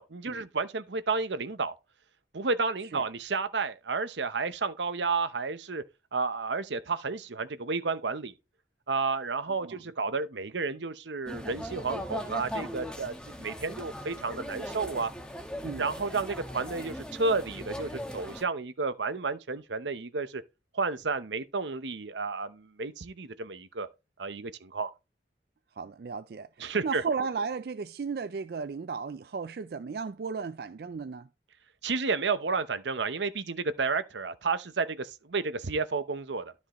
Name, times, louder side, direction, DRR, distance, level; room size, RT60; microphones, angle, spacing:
voice 1, 0.0-1.8 2.3-5.8 6.1-8.3 8.9-15.1 15.8-20.4 20.7-23.9 24.2-24.9 26.6-27.0 31.8-36.5, right 4 dB, 85° right, 0.9 m, -31 dB
sound 1, 11.3-18.4, equal, 5° left, 1.2 m, -39 dB
voice 2, 25.8-31.3, right 5 dB, 55° right, 0.4 m, -35 dB
12.5 x 5.4 x 3.1 m
head